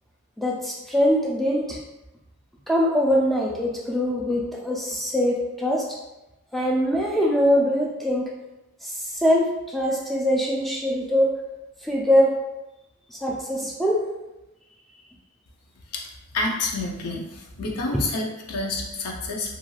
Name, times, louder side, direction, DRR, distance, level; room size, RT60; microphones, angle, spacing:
voice 1, 0.4-1.8 2.7-6.0 6.5-8.3 8.8-11.4 11.8-12.4 13.1-14.1 17.6-18.0, equal, ahead, -2 dB, 0.3 m, -23 dB
voice 2, 16.3-19.6, left 2 dB, 90° left, 0 dB, 0.6 m, -29 dB
3.0 x 2.5 x 2.3 m, 0.96 s
head